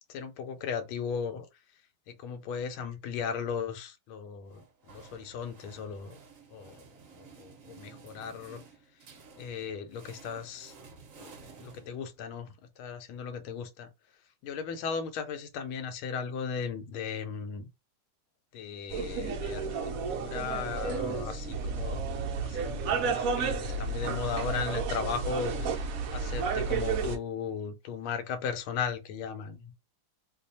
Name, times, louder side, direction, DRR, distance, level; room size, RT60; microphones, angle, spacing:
voice 1, 0.1-1.5 2.1-6.2 6.5-6.8 7.2-8.6 9.4-10.7 11.2-11.3 11.6-13.9 14.4-17.7 18.5-29.8, left 6 dB, 85° left, 1.5 m, -37 dB
sound 1, 4.5-12.4, right 5 dB, 55° right, 0.9 m, -53 dB
sound 2, 18.9-27.2, right 5 dB, 85° right, 0.7 m, -32 dB
3.1 x 2.3 x 4.0 m
omnidirectional pair, 2.2 m